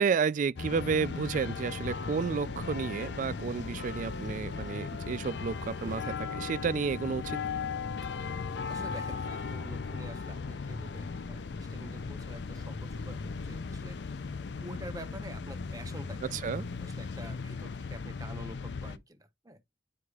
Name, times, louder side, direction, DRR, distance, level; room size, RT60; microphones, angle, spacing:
voice 1, 0.0-7.4 16.3-16.7, right 5 dB, 45° right, 0.3 m, -31 dB
sound 1, 0.6-19.0, left 4 dB, 65° left, 0.5 m, -37 dB
voice 2, 8.7-14.0 14.6-16.3 16.8-19.2 19.4-19.6, right 1 dB, 20° right, 0.8 m, -47 dB
11.0 x 4.7 x 2.4 m
head